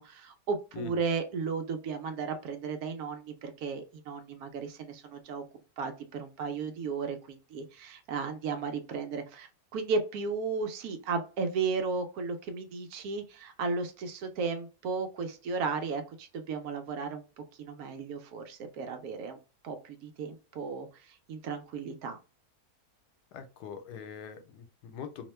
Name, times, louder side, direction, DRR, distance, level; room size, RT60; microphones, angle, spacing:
voice 1, 0.0-5.4 5.8-19.4 19.6-22.2, right 4 dB, 70° right, 6 dB, 1.0 m, -35 dB
voice 2, 23.3-25.3, left 7 dB, 85° left, 8 dB, 1.2 m, -43 dB
2.8 x 2.1 x 3.1 m, 0.33 s
omnidirectional pair, 1.7 m